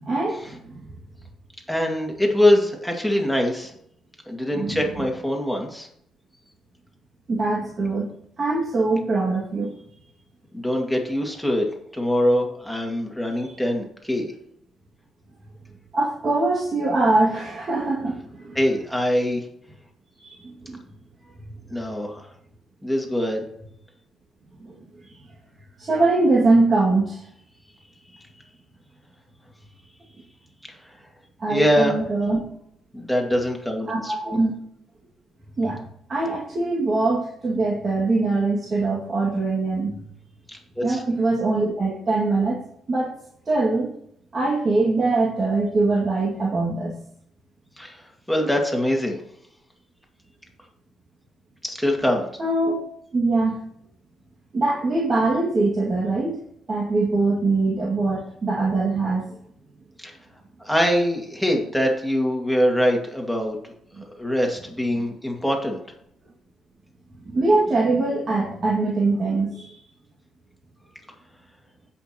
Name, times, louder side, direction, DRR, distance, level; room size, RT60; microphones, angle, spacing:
voice 1, 0.0-0.8 4.5-5.1 7.3-8.1 8.4-9.7 15.9-18.6 20.2-20.3 20.6-20.8 24.6-24.7 25.8-27.2 31.4-32.4 33.9-34.5 35.6-35.8 36.1-39.9 40.8-42.6 42.9-43.1 43.5-43.9 44.3-47.0 52.4-52.7 53.1-53.7 54.5-56.4 56.7-59.3 64.0-64.1 65.0-65.1 67.2-69.7, right 3 dB, 40° right, -5 dB, 2.1 m, -22 dB
voice 2, 1.7-3.7 4.3-5.9 10.5-11.6 11.9-14.3 18.6-19.4 21.7-22.3 22.8-23.4 28.1-28.2 30.7-30.9 31.5-31.9 32.9-34.4 40.5-41.0 47.8-49.2 51.6-52.3 60.0-60.1 60.6-63.7 64.2-65.8, equal, ahead, 1 dB, 2.1 m, -23 dB
15.5 x 5.8 x 3.0 m, 0.71 s
cardioid pair, 90°, 0 cm